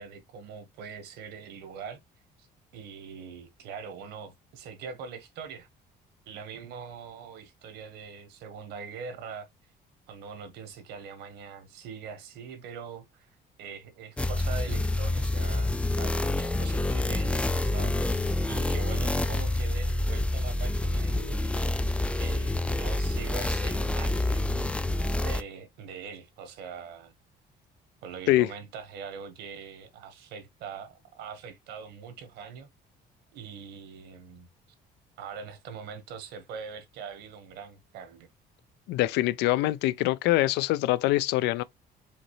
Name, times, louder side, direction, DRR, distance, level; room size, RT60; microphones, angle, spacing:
voice 1, 0.0-2.0 2.4-2.5 2.7-5.7 6.3-9.5 10.1-13.3 13.6-21.6 22.2-24.7 25.2-27.1 28.0-32.7 33.3-34.5 35.2-38.3, right 6 dB, 85° right, 1.3 m, -42 dB
sound 1, 14.2-25.4, left 2 dB, 5° left, 0.4 m, -27 dB
voice 2, 38.9-41.6, left 16 dB, 85° left, 0.4 m, -24 dB
5.1 x 3.0 x 3.1 m
cardioid pair, 110°, 17 cm